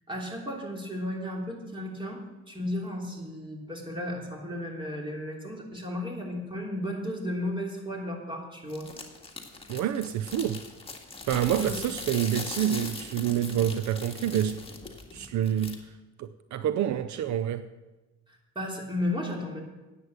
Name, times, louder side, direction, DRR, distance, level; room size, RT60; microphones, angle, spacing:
voice 1, 0.1-8.9 11.6-11.8 18.3-19.6, left 1 dB, 15° right, -1 dB, 3.1 m, -34 dB
sound 1, 8.7-15.8, left 3 dB, 20° left, 1.8 m, -40 dB
voice 2, 9.7-10.6 11.3-14.6 15.1-15.9 16.2-17.6, right 10 dB, 70° right, 12 dB, 0.6 m, -27 dB
9.7 x 7.8 x 7.9 m, 1.1 s
cardioid pair, 90°, 30 cm